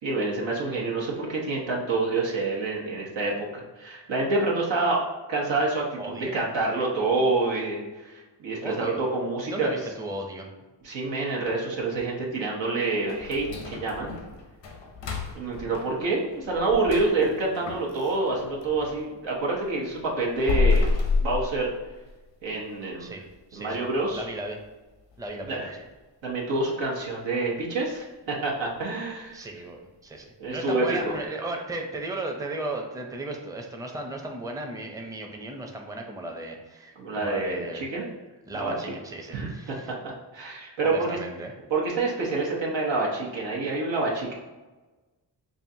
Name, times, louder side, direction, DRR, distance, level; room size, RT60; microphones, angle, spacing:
voice 1, 0.0-5.0 5.3-9.8 10.8-14.1 15.3-20.9 21.2-21.7 22.4-23.1 23.5-24.3 25.5-25.7 26.2-29.4 30.4-31.1 37.0-38.1 38.5-38.8 39.3-41.2 41.7-44.3, right 3 dB, 90° right, -3 dB, 1.0 m, -27 dB
voice 2, 6.0-6.3 8.6-9.0 9.4-10.5 23.0-23.3 23.5-23.9 24.1-24.6 25.2-25.8 29.3-37.9 38.5-39.9 40.8-41.5, right 2 dB, 10° right, 2 dB, 0.5 m, -35 dB
sound 1, 13.1-19.0 19.4-22.2 22.6-22.7 23.2-23.3 23.8-24.1 24.5-24.6 25.1-25.2, left 4 dB, 90° left, 0.7 m, -30 dB
5.4 x 2.5 x 2.7 m, 1.2 s
cardioid pair, 70°, 43 cm